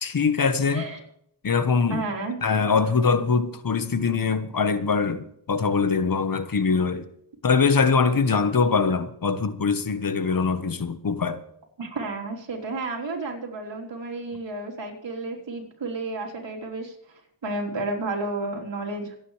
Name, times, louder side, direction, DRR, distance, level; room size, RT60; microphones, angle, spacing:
voice 1, 0.0-0.9 1.4-2.0 2.4-7.1 7.4-11.4, left 5 dB, 50° left, 1.2 m, -23 dB
voice 2, 0.7-1.0 1.9-2.4 11.8-17.0 17.4-19.2, right 2 dB, 75° right, 3.8 m, -31 dB
26.5 x 9.2 x 3.3 m
cardioid pair, 80°, 44 cm